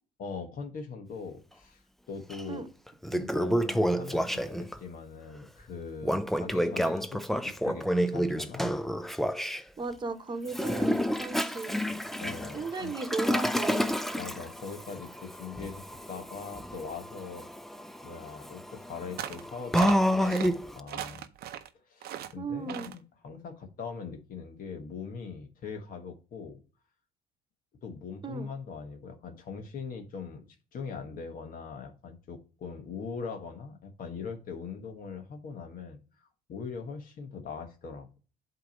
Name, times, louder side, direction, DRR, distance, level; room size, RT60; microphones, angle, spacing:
voice 1, 0.2-2.7 3.1-8.7 12.2-12.9 14.2-17.5 18.0-21.2 21.9-26.6 27.8-30.5 30.7-38.2, left 5 dB, 55° left, 5 dB, 1.2 m, -41 dB
Toilet flush, 2.3-2.4 2.9-4.8 6.0-9.6 10.5-20.8, equal, ahead, 0.4 m, -29 dB
voice 2, 9.8-11.8 12.5-14.0 22.4-22.9 28.2-28.5, right 3 dB, 25° right, 8 dB, 1.1 m, -36 dB
sound 1, 19.2-19.4 19.7-20.5 20.9-21.7 22.0-22.3 22.7-23.0, right 11 dB, 70° right, 0.7 m, -38 dB
8.0 x 3.0 x 5.1 m, 0.35 s
cardioid pair, 110°, 17 cm